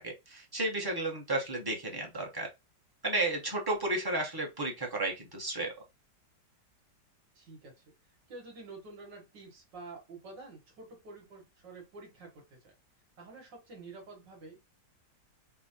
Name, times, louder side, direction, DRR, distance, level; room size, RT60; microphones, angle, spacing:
voice 1, 0.0-2.5 3.0-5.7, right 2 dB, 20° right, 0.6 m, -33 dB
voice 2, 7.4-7.8 8.3-12.7 13.2-14.6, right 3 dB, 75° right, 2.0 m, -49 dB
5.4 x 2.1 x 2.8 m
omnidirectional pair, 2.0 m